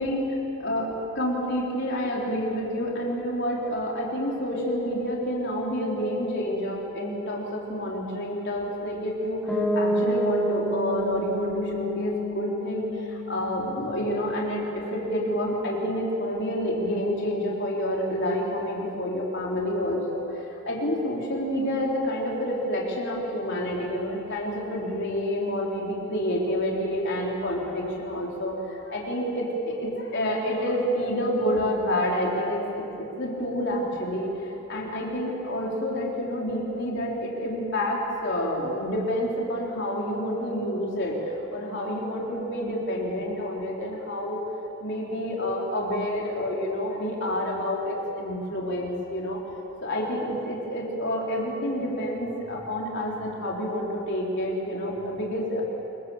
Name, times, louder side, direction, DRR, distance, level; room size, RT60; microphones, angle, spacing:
voice 1, 0.6-44.4 44.8-49.4 49.8-55.6, equal, 55° left, -3 dB, 4.4 m, -28 dB
Piano, 9.5-15.2, right 1 dB, 5° left, 6.5 m, -30 dB
28.5 x 24.5 x 7.5 m, 2.9 s
head